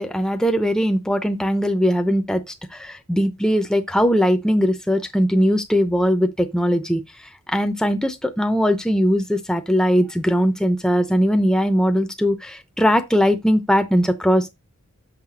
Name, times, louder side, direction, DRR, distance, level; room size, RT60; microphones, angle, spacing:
voice 1, 0.0-2.4 2.7-7.0 7.5-14.5, equal, 5° left, 0.7 m, -20 dB
6.6 x 5.9 x 3.8 m
head